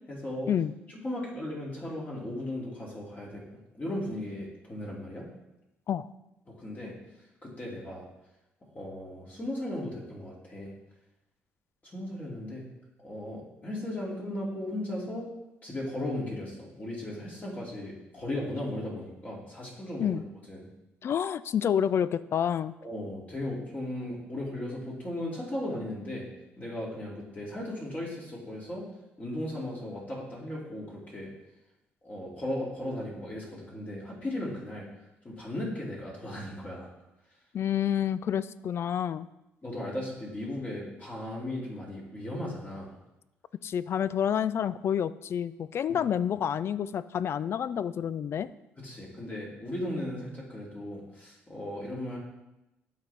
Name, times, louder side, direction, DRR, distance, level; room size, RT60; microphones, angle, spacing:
voice 1, 0.1-0.5 1.0-3.4 3.7-5.3 6.5-6.9 7.4-8.1 8.7-10.7 11.9-12.6 13.0-15.3 15.6-20.1 20.5-20.7 22.8-26.3 26.6-28.8 29.2-31.3 32.0-34.9 35.2-36.9 39.6-42.9 48.8-52.2, left 1 dB, 30° left, -4 dB, 2.6 m, -36 dB
voice 2, 21.0-22.7 37.5-39.3 43.6-48.5, left 9 dB, 55° left, 16 dB, 0.4 m, -28 dB
12.0 x 4.2 x 3.4 m, 0.92 s
supercardioid pair, 70°, 5 cm